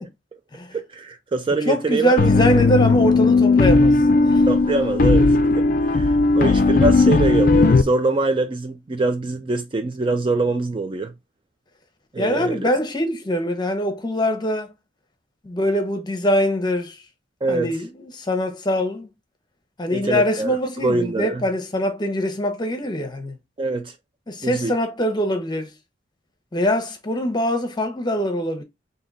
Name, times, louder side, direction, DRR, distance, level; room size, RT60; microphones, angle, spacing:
voice 1, 0.7-2.3 4.5-11.1 12.1-12.6 17.4-17.7 19.9-20.5 20.8-21.4 23.6-23.9 24.4-24.7, right 3 dB, 25° right, 0.4 m, -24 dB
voice 2, 1.5-4.5 12.2-14.7 15.4-17.0 17.5-19.1 19.8-23.4 24.3-25.7 26.5-28.6, equal, 25° left, 0.8 m, -23 dB
sound 1, 2.2-7.8, left 3 dB, 50° left, 0.4 m, -16 dB
3.6 x 2.8 x 4.0 m
head